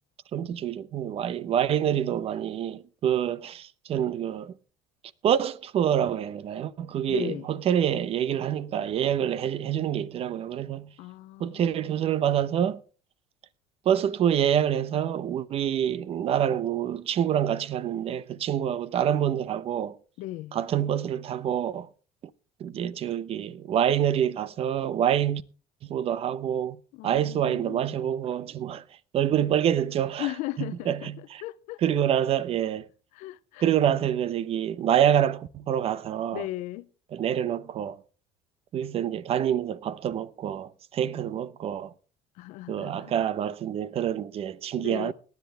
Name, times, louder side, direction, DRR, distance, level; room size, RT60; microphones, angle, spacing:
voice 1, 0.3-4.5 5.2-10.9 11.4-12.8 13.9-20.0 20.5-21.9 22.6-25.4 25.8-26.8 27.0-28.8 29.1-30.3 30.6-31.0 31.3-31.4 31.8-32.9 33.6-36.4 37.1-38.0 38.7-41.9 42.7-45.1, right 10 dB, 50° right, 0.8 m, -26 dB
voice 2, 7.1-7.5 11.0-12.1 20.2-20.6 26.9-28.0 30.2-31.8 33.1-33.7 36.3-36.9 42.4-43.1 44.8-45.1, left 17 dB, 75° left, 0.6 m, -37 dB
18.5 x 10.5 x 3.4 m
supercardioid pair, 95°, 13 cm